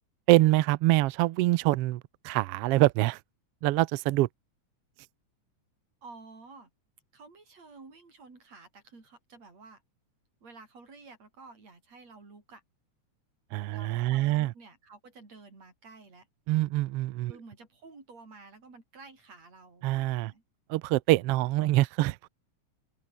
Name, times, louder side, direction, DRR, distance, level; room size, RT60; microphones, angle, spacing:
voice 1, 0.3-3.2 3.6-4.3 13.5-14.5 16.5-17.3 19.8-20.3 20.7-22.3, right 17 dB, 90° right, 1.3 m, -25 dB
voice 2, 6.0-6.7 7.1-9.8 10.4-12.6 13.7-16.3 17.3-19.9 20.2-20.4 21.4-21.5, right 4 dB, 60° right, 7.4 m, -51 dB
open air
omnidirectional pair, 3.5 m